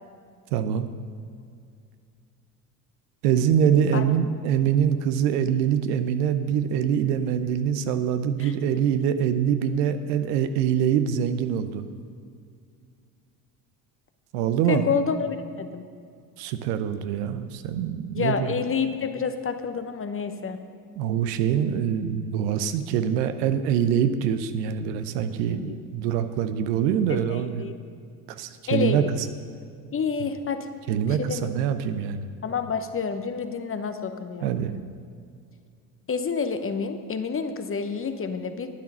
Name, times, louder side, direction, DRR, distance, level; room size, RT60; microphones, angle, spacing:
voice 1, 0.5-0.9 3.2-11.9 14.3-14.8 16.4-18.5 21.0-27.6 28.3-29.0 30.9-32.3 34.4-34.8, right 8 dB, 75° right, 10 dB, 0.9 m, -24 dB
voice 2, 14.7-15.9 18.1-20.6 25.5-25.7 27.1-27.7 28.7-29.1 29.9-30.7 31.2-31.5 32.4-34.5 36.1-38.7, left 5 dB, 25° left, 8 dB, 1.0 m, -28 dB
11.5 x 9.4 x 5.6 m, 2.3 s
hypercardioid pair, 70°, 49 cm